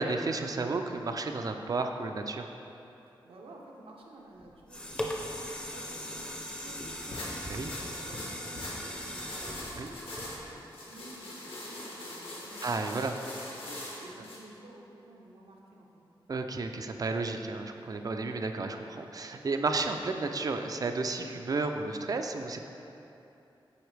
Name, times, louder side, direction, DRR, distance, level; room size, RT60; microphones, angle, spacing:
voice 1, 0.0-2.5 7.4-7.7 9.8-9.9 12.6-13.1 16.3-22.6, right 3 dB, 40° right, 5 dB, 0.4 m, -32 dB
voice 2, 3.2-6.3 6.6-12.8 13.1-15.9, right 2 dB, 85° right, -1 dB, 0.8 m, -52 dB
sound 1, 4.4-10.7 11.2-11.3, equal, 10° left, 0.6 m, -39 dB
sound 2, 7.1-14.4, left 1 dB, 75° left, 1.2 m, -42 dB
7.7 x 4.5 x 3.3 m, 2.9 s
wide cardioid pair, 120°, 9 cm